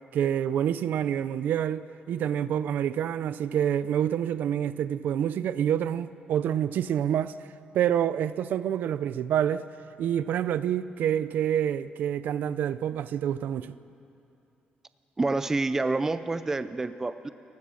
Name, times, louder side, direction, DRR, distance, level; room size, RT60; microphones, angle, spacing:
voice 1, 0.1-7.3 7.7-9.6 10.0-13.8, right 9 dB, 65° right, 0.5 m, -27 dB
voice 2, 15.2-17.3, right 3 dB, 15° right, 0.5 m, -28 dB
29.5 x 15.5 x 6.4 m
cardioid pair, 170°, 3 cm